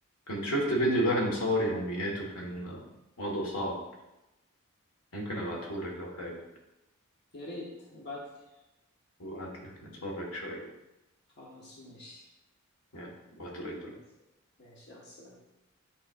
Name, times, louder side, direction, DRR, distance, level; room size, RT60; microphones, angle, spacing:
voice 1, 0.3-2.8 3.2-3.8 5.1-6.4 9.2-10.6 12.9-13.1 13.4-13.8, equal, 75° left, -1 dB, 1.7 m, -32 dB
voice 2, 7.3-8.2 11.4-12.3 13.8-14.0 14.6-15.4, left 2 dB, 50° left, -3 dB, 1.0 m, -45 dB
8.9 x 5.1 x 2.5 m, 0.96 s
head